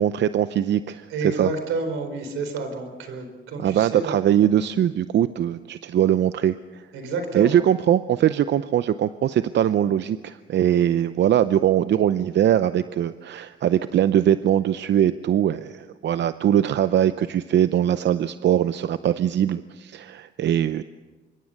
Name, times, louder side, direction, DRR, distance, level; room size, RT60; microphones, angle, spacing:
voice 1, 0.0-1.5 3.6-6.9 7.3-20.8, right 10 dB, 60° right, 13 dB, 0.7 m, -21 dB
voice 2, 1.1-4.1 6.9-7.7, right 3 dB, 85° right, 7 dB, 4.4 m, -29 dB
26.0 x 23.5 x 6.6 m, 1.3 s
cardioid pair, 90°, 20 cm